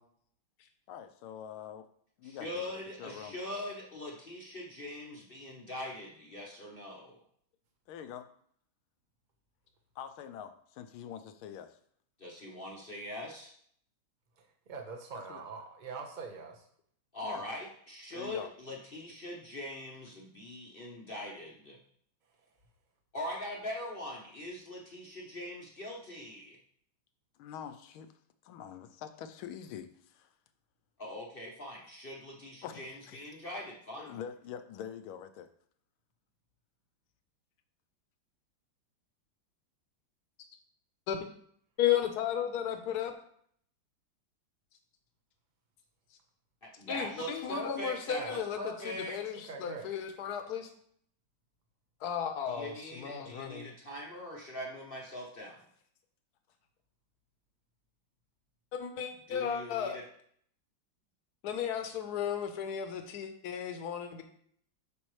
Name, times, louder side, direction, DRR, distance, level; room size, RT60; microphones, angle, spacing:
voice 1, 0.9-1.9 2.2-2.6 3.0-3.4 7.9-8.3 9.9-11.8 15.3-15.4 17.2-17.4 18.1-18.5 27.4-28.1 28.4-30.3 32.6-33.3 34.0-35.5, left 9 dB, 85° left, 10 dB, 1.5 m, -45 dB
voice 2, 2.2-7.2 12.2-13.5 17.1-21.8 23.1-26.6 31.0-34.2 46.6-49.2 52.5-55.6 59.3-60.0, left 1 dB, 40° left, -2 dB, 0.8 m, -42 dB
voice 3, 14.4-16.7 48.2-48.4 49.4-49.9, right 4 dB, 35° right, 2 dB, 0.8 m, -43 dB
voice 4, 41.8-43.1 46.9-50.7 52.0-53.7 58.7-60.0 61.4-64.2, left 9 dB, 60° left, 6 dB, 1.3 m, -34 dB
8.5 x 6.1 x 3.2 m, 0.63 s
omnidirectional pair, 2.3 m